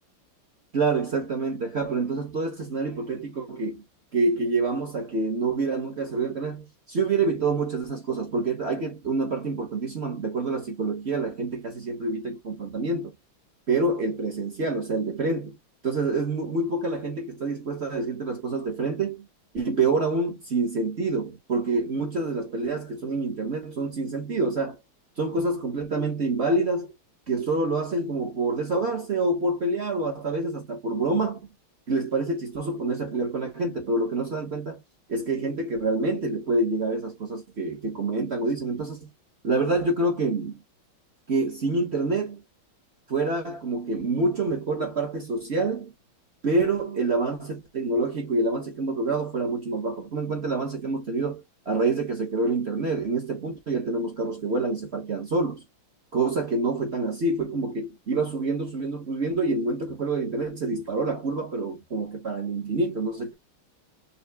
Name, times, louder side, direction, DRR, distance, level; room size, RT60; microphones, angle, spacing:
voice 1, 0.7-3.8 4.1-13.1 13.7-15.6 15.8-19.2 19.5-24.7 25.2-26.9 27.3-31.4 31.9-34.8 35.1-39.1 39.4-40.6 41.3-42.4 43.1-45.9 46.4-55.6 56.1-63.3, right 3 dB, 40° right, 1.2 m, -27 dB
5.5 x 3.3 x 2.3 m
omnidirectional pair, 2.3 m